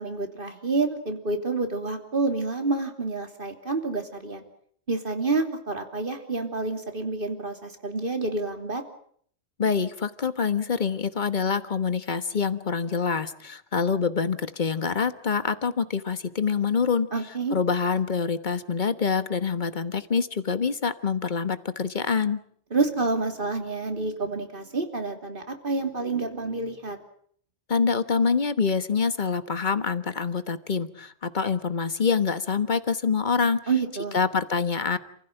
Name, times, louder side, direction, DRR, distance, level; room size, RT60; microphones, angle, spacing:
voice 1, 0.0-4.4 4.9-8.8 17.1-17.6 22.7-27.0 33.7-34.2, right 3 dB, 45° right, 6 dB, 3.2 m, -28 dB
voice 2, 9.6-17.1 17.5-22.4 27.7-33.6 34.1-35.0, left 5 dB, 40° left, 12 dB, 1.4 m, -26 dB
28.5 x 16.0 x 9.1 m, 0.63 s
omnidirectional pair, 1.3 m